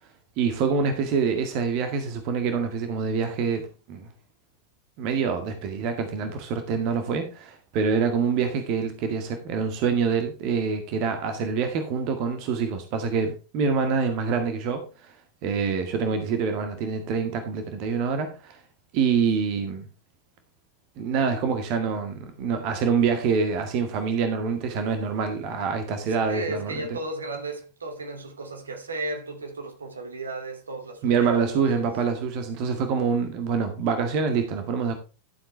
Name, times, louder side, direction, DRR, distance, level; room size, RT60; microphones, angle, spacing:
voice 1, 0.4-4.1 5.0-15.1 15.4-18.6 18.9-19.9 21.0-26.7 31.0-34.9, right 6 dB, 45° right, 1.8 m, -26 dB
voice 2, 26.1-31.9, right 2 dB, 75° right, 2.5 m, -34 dB
12.0 x 7.7 x 3.3 m
figure-of-eight pair, 90°, 0 cm